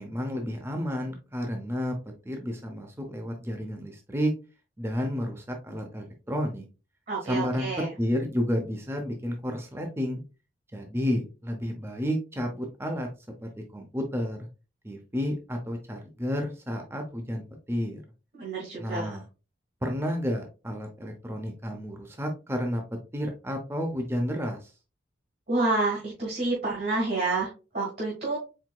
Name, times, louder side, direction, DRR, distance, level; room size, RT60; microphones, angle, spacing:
voice 1, 0.0-2.0 2.2-4.3 4.8-6.7 7.3-7.7 8.0-10.2 10.7-13.1 13.4-14.4 14.8-18.0 18.8-19.2 19.8-22.8 23.1-24.7, equal, 15° right, 3 dB, 0.6 m, -31 dB
voice 2, 7.1-7.9 18.3-19.2 25.5-28.4, right 2 dB, 50° right, -4 dB, 1.5 m, -28 dB
4.6 x 3.5 x 2.2 m, 0.31 s
head